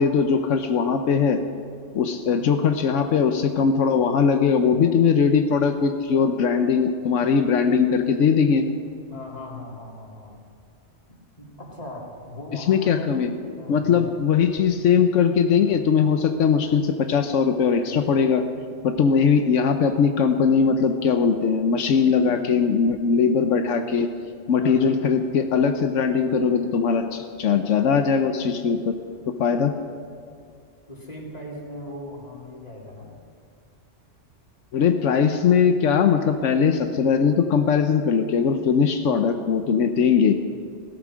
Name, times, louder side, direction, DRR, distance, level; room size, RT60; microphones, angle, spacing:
voice 1, 0.0-1.4 1.9-8.6 12.7-13.3 13.7-18.4 18.8-24.1 24.5-28.9 29.3-29.8 34.7-40.3, left 6 dB, 90° left, 6 dB, 1.2 m, -20 dB
voice 2, 9.1-10.4 11.1-14.2 17.9-18.0 24.6-25.0 30.9-33.1, left 1 dB, 35° left, -2 dB, 2.9 m, -39 dB
17.0 x 13.0 x 6.2 m, 2.2 s
omnidirectional pair, 1.2 m